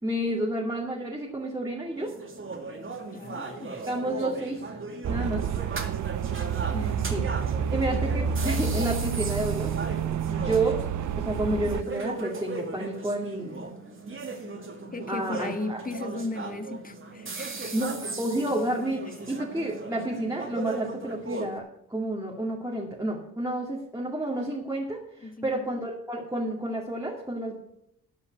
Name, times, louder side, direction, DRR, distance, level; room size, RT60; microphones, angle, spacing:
voice 1, 0.0-2.1 3.8-4.6 5.1-5.5 7.1-7.2 7.7-9.7 10.3-10.8 11.2-13.7 15.1-15.8 17.7-21.6 21.9-27.6, right 1 dB, 10° right, -3 dB, 2.2 m, -30 dB
sound 1, 1.9-21.6, right 3 dB, 35° right, 2.2 m, -37 dB
voice 2, 3.1-3.9 6.7-7.2 14.9-17.8 18.9-19.2 25.2-25.7, left 2 dB, 25° left, 9 dB, 1.4 m, -36 dB
sound 2, 5.0-11.8, right 7 dB, 55° right, 0.7 m, -29 dB
12.0 x 5.6 x 8.0 m, 0.75 s
cardioid pair, 70°, 35 cm